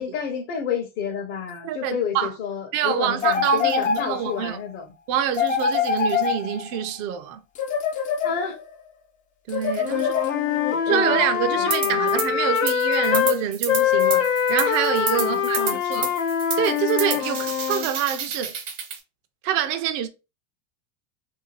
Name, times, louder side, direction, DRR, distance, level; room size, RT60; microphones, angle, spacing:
voice 1, 0.0-4.9 8.2-8.6 9.9-11.2 11.5-12.0 15.2-16.1, left 7 dB, 50° left, 0.7 m, -30 dB
voice 2, 1.6-2.3 2.7-4.6 5.1-7.4 9.5-10.2 10.9-15.6 15.9-16.1 16.6-18.5 19.4-20.1, right 10 dB, 45° right, 0.5 m, -26 dB
sound 1, 3.2-4.5 5.3-6.9 7.6-8.7 9.5-10.7, left 6 dB, 20° left, 0.3 m, -25 dB
Wind instrument woodwind instrument, 9.8-13.4 13.7-17.9, left 8 dB, 90° left, 0.7 m, -23 dB
sound 2, 11.7-12.3 12.6-19.0, right 7 dB, 70° right, 1.1 m, -30 dB
2.7 x 2.2 x 3.0 m
hypercardioid pair, 105°, 38 cm